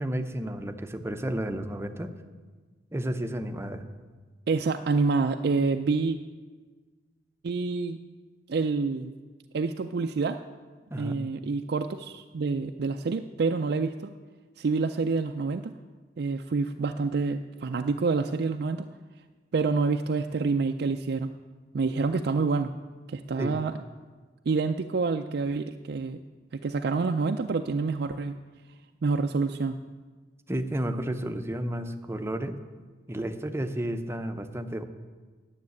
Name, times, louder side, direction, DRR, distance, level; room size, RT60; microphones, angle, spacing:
voice 1, 0.0-2.1 2.9-3.8 10.9-11.2 23.4-23.5 30.5-32.6 33.1-34.8, right 1 dB, 15° right, 8 dB, 0.7 m, -32 dB
voice 2, 4.5-6.2 7.4-8.0 8.5-9.1 9.5-10.4 11.0-14.1 14.6-15.7 16.2-18.9 19.5-21.3 21.7-22.7 23.1-23.7 24.5-26.2 26.5-28.4 29.0-29.8, right 4 dB, 65° right, 6 dB, 0.4 m, -27 dB
9.8 x 7.4 x 9.3 m, 1.4 s
head